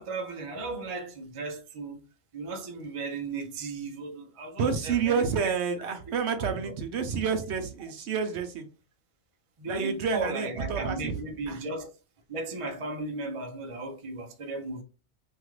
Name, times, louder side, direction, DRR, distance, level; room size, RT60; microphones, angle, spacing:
voice 1, 0.0-2.0 2.3-5.5 6.4-6.8 7.8-7.9 9.6-11.9 12.3-14.8, right 3 dB, 45° right, 0.4 m, -36 dB
voice 2, 4.6-8.6 9.7-11.1 11.5-11.6, right 6 dB, 65° right, 0.8 m, -29 dB
2.9 x 2.4 x 3.0 m
omnidirectional pair, 1.4 m